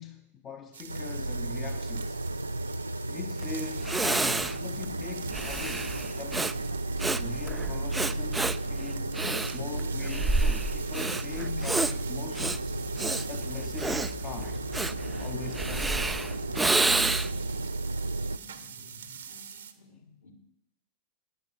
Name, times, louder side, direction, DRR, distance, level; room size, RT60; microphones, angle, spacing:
voice 1, 0.0-2.2 3.1-5.9 6.2-6.5 7.2-9.2 9.5-12.7 13.3-14.6 15.2-16.1, left 6 dB, 30° left, 0.8 m, -41 dB
sound 1, 0.7-19.7, right 7 dB, 65° right, 1.0 m, -46 dB
sound 2, 0.9-18.4, right 2 dB, 85° right, 0.4 m, -34 dB
Breathing, 3.4-3.5 3.8-17.5, right 3 dB, 10° right, 0.4 m, -30 dB
voice 2, 18.3-20.3, left 1 dB, 70° left, 3.5 m, -55 dB
11.0 x 8.3 x 6.8 m
figure-of-eight pair, 90°, 0 cm